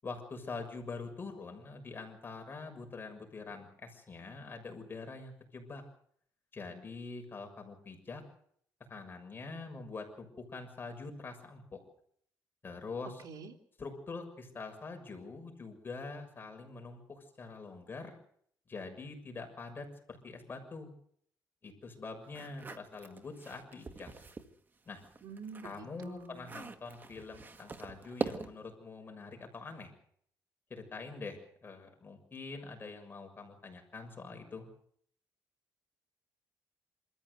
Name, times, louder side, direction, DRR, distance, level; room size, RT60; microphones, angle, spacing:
voice 1, 0.0-5.8 6.5-8.2 8.9-11.8 12.6-13.2 13.8-18.1 18.7-20.9 21.6-24.1 24.8-25.0 25.6-29.9 30.7-34.7, left 4 dB, 30° left, 4 dB, 6.5 m, -45 dB
voice 2, 13.2-13.5 25.2-26.5, right 4 dB, 70° right, 3 dB, 3.4 m, -47 dB
sound 1, 22.3-24.5 24.9-28.7, right 4 dB, 30° right, 1.7 m, -42 dB
27.0 x 14.5 x 8.1 m, 0.65 s
cardioid pair, 115°, 7 cm